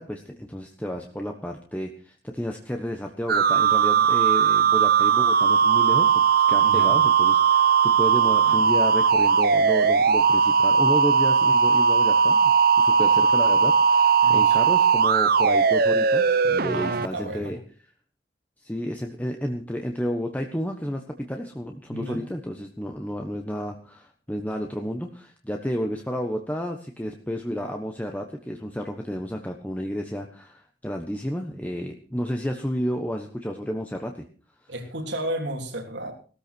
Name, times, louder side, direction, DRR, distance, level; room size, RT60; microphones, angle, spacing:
voice 1, 0.0-17.6 18.6-34.2, equal, 10° left, 3 dB, 1.2 m, -31 dB
sound 1, 3.3-17.1, right 6 dB, 55° right, 0.8 m, -19 dB
voice 2, 6.6-7.0 8.4-8.6 14.2-14.6 16.7-17.5 21.9-22.2 34.7-36.2, right 1 dB, 75° right, 2 dB, 3.4 m, -33 dB
17.5 x 13.5 x 4.5 m, 0.39 s
head